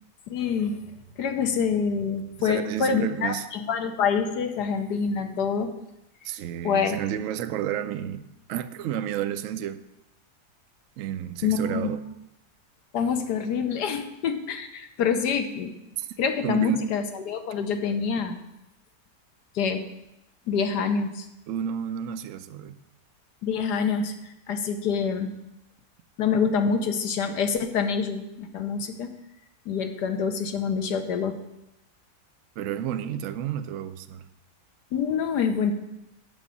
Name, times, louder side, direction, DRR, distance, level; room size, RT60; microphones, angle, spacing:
voice 1, 0.3-0.8 1.2-5.7 6.6-7.0 11.4-11.9 12.9-15.7 16.2-18.4 19.5-19.8 20.5-21.3 23.4-25.3 26.2-29.1 29.7-31.4 34.9-35.7, left 6 dB, 80° left, 1.5 m, -26 dB
voice 2, 2.4-3.5 6.2-9.8 11.0-12.0 16.0-16.1 16.4-16.9 21.5-22.8 32.6-34.3, right 10 dB, 65° right, 0.8 m, -31 dB
8.9 x 6.2 x 6.9 m
omnidirectional pair, 1.8 m